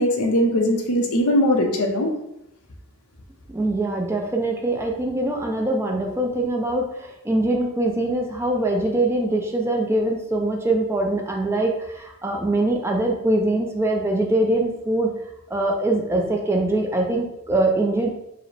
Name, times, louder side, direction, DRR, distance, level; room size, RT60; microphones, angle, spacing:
voice 1, 0.0-2.1, equal, 80° left, 2 dB, 0.7 m, -20 dB
voice 2, 3.5-15.1 15.5-18.1, right 2 dB, 10° right, 1 dB, 0.4 m, -23 dB
4.7 x 2.1 x 3.3 m, 0.83 s
head